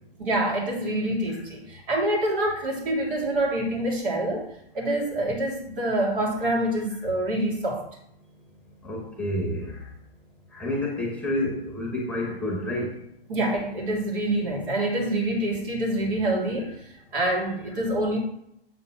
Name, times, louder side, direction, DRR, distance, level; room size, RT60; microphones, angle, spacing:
voice 1, 0.2-4.4 4.7-7.8 13.3-16.7 17.1-18.2, right 1 dB, 65° right, -1 dB, 2.6 m, -26 dB
voice 2, 8.8-9.8 10.5-12.9 17.8-17.9, left 1 dB, 5° left, 0 dB, 1.1 m, -29 dB
7.0 x 3.7 x 5.8 m, 0.76 s
hypercardioid pair, 140°, 29 cm